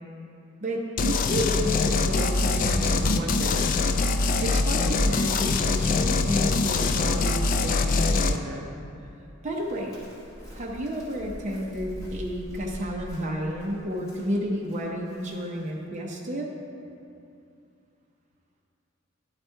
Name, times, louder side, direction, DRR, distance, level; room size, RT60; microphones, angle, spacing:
voice 1, 0.6-3.7 4.4-8.7 9.4-10.0 10.5-16.5, equal, 35° right, -2 dB, 0.7 m, -31 dB
sound 1, 1.0-8.4, left 3 dB, 40° left, 0.3 m, -23 dB
Chirp tweet, 9.5-15.7, equal, 15° left, 1.9 m, -44 dB
11.0 x 4.1 x 4.5 m, 2.6 s
head